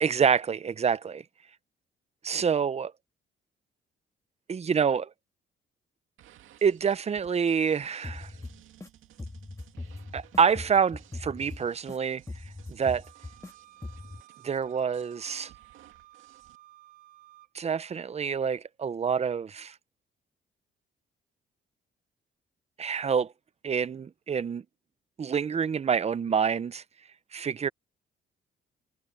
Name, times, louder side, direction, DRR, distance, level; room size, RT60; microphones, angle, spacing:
voice 1, 0.0-1.2 2.2-2.9 4.5-5.1 6.6-8.3 10.1-12.2 12.7-13.0 14.4-15.5 17.5-19.7 22.8-23.3 23.6-24.6 25.2-26.8 27.3-27.7, right 6 dB, 30° right, 0.7 m, -27 dB
sound 1, 6.2-16.6, right 12 dB, 85° right, 2.2 m, -57 dB
sound 2, 8.0-8.9 9.2-12.0 12.3-13.5 13.8-14.2, left 2 dB, 15° left, 1.9 m, -41 dB
Wind instrument woodwind instrument, 13.0-17.5, right 16 dB, 50° right, 2.9 m, -55 dB
cardioid pair, 90°, 20 cm